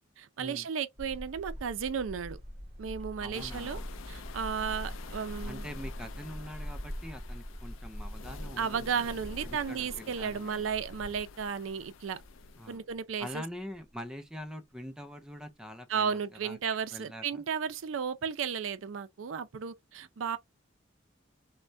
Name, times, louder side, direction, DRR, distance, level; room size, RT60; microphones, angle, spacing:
voice 1, 0.0-2.4 2.8-5.7 8.6-12.2 12.7-13.4 15.9-20.4, right 6 dB, 85° right, 0.4 m, -34 dB
sound 1, 1.0-13.0 13.3-13.4 13.7-13.8, equal, 35° right, 1.1 m, -43 dB
voice 2, 3.2-3.9 5.5-8.9 9.4-10.6 12.6-12.8 13.2-16.6 16.9-17.4, equal, 5° right, 0.4 m, -44 dB
sound 2, 3.3-12.8, left 6 dB, 80° left, 0.4 m, -50 dB
3.2 x 2.1 x 2.5 m
head